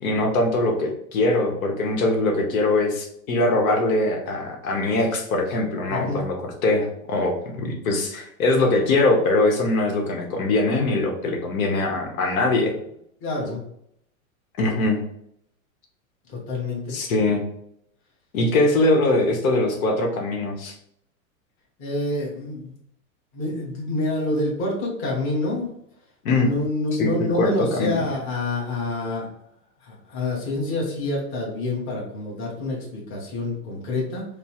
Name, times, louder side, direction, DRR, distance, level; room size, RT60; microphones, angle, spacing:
voice 1, 0.0-12.7 14.6-15.0 16.9-17.4 18.3-20.7 26.2-26.5 26.9-28.1, left 2 dB, 75° left, 1 dB, 1.0 m, -22 dB
voice 2, 5.9-6.3 13.2-13.6 16.3-16.9 21.8-22.8 23.3-25.7 26.3-29.3 29.8-34.2, left 2 dB, 30° left, -2 dB, 1.2 m, -27 dB
5.2 x 2.0 x 2.9 m, 0.73 s
supercardioid pair, 150°, 42 cm